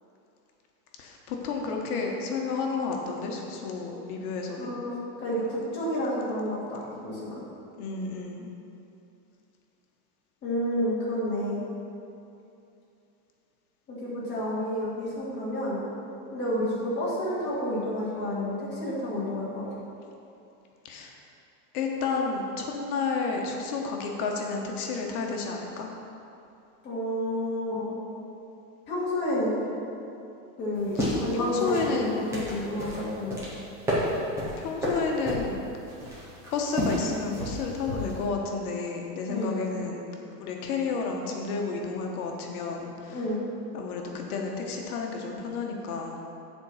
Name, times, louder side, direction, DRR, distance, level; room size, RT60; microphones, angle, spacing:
voice 1, 1.0-4.7 7.8-8.5 20.8-21.2 21.7-25.9 30.9-32.3 34.6-35.6 36.5-40.0 40.4-43.2 43.7-46.1, left 4 dB, 65° left, 1 dB, 1.3 m, -31 dB
voice 2, 4.6-7.4 10.4-11.6 13.9-15.8 16.3-19.6 26.8-28.0 28.9-29.5 30.6-33.4 39.3-39.6 43.1-43.4, left 1 dB, 20° left, -8 dB, 2.1 m, -30 dB
sound 1, 30.7-38.3, equal, 5° right, 0.4 m, -31 dB
7.6 x 4.6 x 7.1 m, 2.7 s
supercardioid pair, 175°, 47 cm